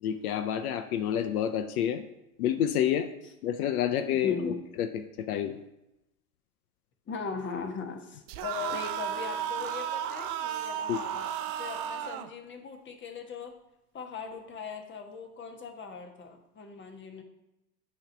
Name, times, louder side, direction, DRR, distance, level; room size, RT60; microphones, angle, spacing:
voice 1, 0.0-2.0 2.4-3.1 3.4-5.6 10.9-11.0, left 10 dB, 75° left, 8 dB, 0.7 m, -29 dB
voice 2, 4.1-4.6 7.1-11.3 11.6-13.5 13.9-17.2, left 5 dB, 25° left, 4 dB, 1.2 m, -39 dB
sound 1, 8.3-12.3, right 10 dB, 50° right, 0.7 m, -34 dB
8.5 x 3.1 x 5.9 m, 0.90 s
hypercardioid pair, 95°, 44 cm